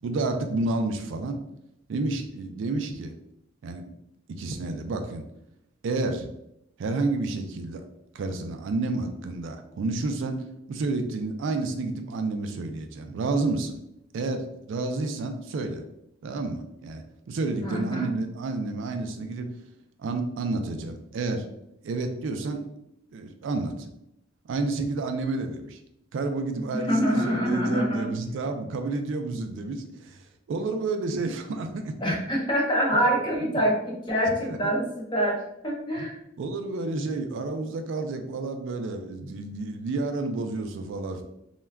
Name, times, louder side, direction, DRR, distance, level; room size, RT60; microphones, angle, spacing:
voice 1, 0.0-1.4 1.9-3.1 3.6-3.9 4.3-5.2 5.8-6.3 6.8-7.8 8.1-10.4 10.7-13.8 14.1-15.8 16.2-19.5 20.0-21.4 21.8-22.6 23.1-23.9 24.5-25.8 26.1-31.9 34.4-34.7 36.0-36.1 36.4-41.2, right 3 dB, 65° right, 6 dB, 0.3 m, -30 dB
voice 2, 17.6-18.1 26.7-28.1 32.0-36.2, equal, 25° left, -1 dB, 0.6 m, -25 dB
2.2 x 2.1 x 3.3 m, 0.81 s
head